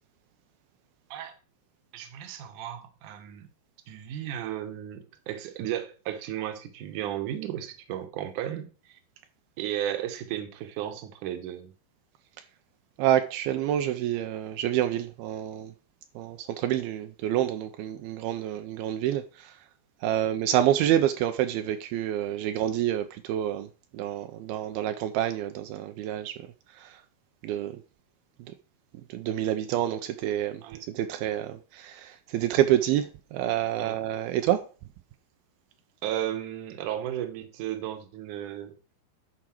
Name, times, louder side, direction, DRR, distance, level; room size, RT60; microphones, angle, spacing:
voice 1, 1.9-3.5 3.9-9.0 9.6-11.7 30.6-30.8 33.8-34.0 36.0-38.8, right 11 dB, 70° right, 2.0 m, -34 dB
voice 2, 13.0-15.7 16.2-19.6 20.0-23.7 23.9-26.4 26.7-27.0 27.4-27.8 29.1-34.7, right 11 dB, 90° right, 2.1 m, -28 dB
11.0 x 4.8 x 5.9 m
omnidirectional pair, 5.1 m